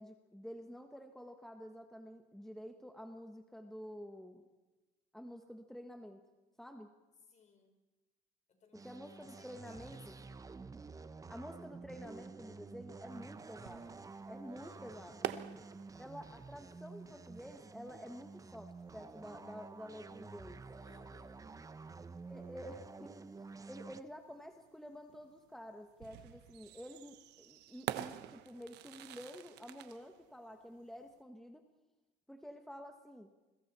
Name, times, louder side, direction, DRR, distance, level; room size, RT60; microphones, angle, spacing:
voice 1, 0.0-4.4 5.1-6.2 6.6-6.9 8.7-10.1 11.3-14.0 14.2-15.3 15.9-20.6 22.2-23.2 23.7-31.6 32.3-33.3, equal, ahead, 5 dB, 1.4 m, -50 dB
voice 2, 7.3-7.8 8.5-10.7 14.5-15.2 20.8-21.5, left 4 dB, 45° left, 5 dB, 4.5 m, -64 dB
sound 1, 8.7-24.0, right 4 dB, 20° right, 0.8 m, -50 dB
sound 2, 13.2-31.2, right 13 dB, 85° right, 1.1 m, -49 dB
29.5 x 22.0 x 4.4 m, 1.1 s
cardioid pair, 110°, 17 cm